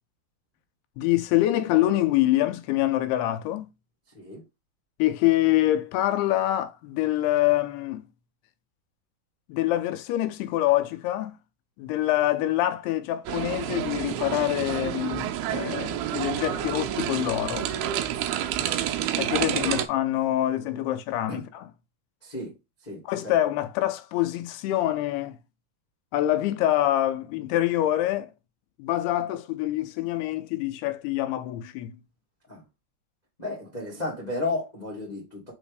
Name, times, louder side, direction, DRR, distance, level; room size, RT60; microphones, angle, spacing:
voice 1, 1.0-3.7 5.0-8.0 9.5-11.4 11.8-17.7 19.2-21.7 23.1-25.4 26.1-28.3 28.8-31.9, left 14 dB, 85° left, 2.7 m, -25 dB
sound 1, 13.3-19.9, right 11 dB, 85° right, 2.6 m, -29 dB
voice 2, 19.3-19.7 20.6-20.8 21.3-21.4 22.2-22.5 22.8-23.3 32.5-32.6 33.4-35.5, left 2 dB, 35° left, 0.6 m, -34 dB
6.3 x 3.0 x 4.8 m
omnidirectional pair, 4.6 m